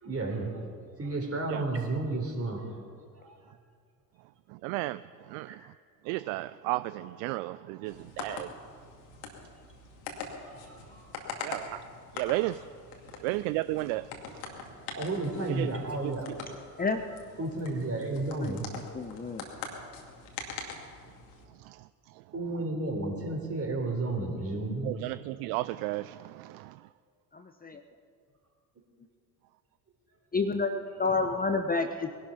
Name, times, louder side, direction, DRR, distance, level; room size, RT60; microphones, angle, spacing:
voice 1, 0.0-2.8 3.1-3.4 5.5-5.6 10.4-11.3 13.1-13.2 14.5-14.6 14.9-16.3 16.7-16.9 17.4-18.7 22.3-24.9 31.1-31.2, right 2 dB, 30° right, 1 dB, 4.0 m, -33 dB
voice 2, 4.5-5.7 6.0-8.5 11.4-11.8 12.1-12.6 13.2-14.5 15.5-15.7 16.0-16.1 21.5-22.2 24.8-26.9, right 18 dB, 60° right, 16 dB, 0.5 m, -34 dB
sound 1, 7.9-21.4, left 5 dB, 65° left, 2.4 m, -43 dB
voice 3, 18.9-19.5 27.3-27.8 30.3-32.3, left 4 dB, 20° left, 7 dB, 1.0 m, -30 dB
21.0 x 11.5 x 5.7 m, 2.1 s
figure-of-eight pair, 60°, 48 cm